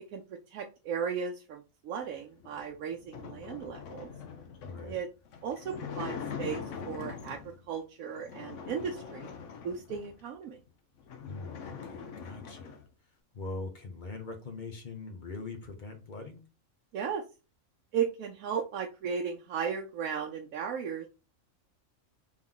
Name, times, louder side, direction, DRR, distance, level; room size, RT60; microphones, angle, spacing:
voice 1, 0.5-4.1 4.8-5.1 5.4-7.4 7.7-9.3 9.6-10.6 16.9-17.2 17.9-21.1, right 7 dB, 85° right, 1.1 m, -35 dB
sound 1, 2.4-7.6 8.1-10.2 10.7-10.8 11.0-12.9, left 6 dB, 65° left, 1.0 m, -42 dB
voice 2, 4.6-5.0 11.3-12.8 13.3-16.4, left 3 dB, 40° left, 0.9 m, -42 dB
3.7 x 3.1 x 3.7 m
omnidirectional pair, 1.4 m